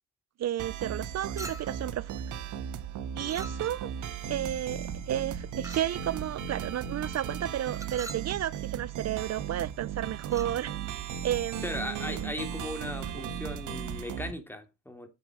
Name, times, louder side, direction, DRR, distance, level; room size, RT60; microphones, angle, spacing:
voice 1, 0.4-2.2 3.2-3.9 4.3-10.8 11.2-12.3 13.2-13.3, right 11 dB, 60° right, 0.7 m, -32 dB
sound 1, 0.6-14.3, right 8 dB, 80° right, 1.6 m, -37 dB
Chink clink, 1.4-1.9 3.3-3.9 5.6-6.0 7.7-8.3 10.2-10.6, right 2 dB, 10° right, 1.5 m, -43 dB
voice 2, 11.6-15.1, left 1 dB, 5° left, 3.0 m, -38 dB
10.0 x 6.6 x 6.6 m
cardioid pair, 90°, 30 cm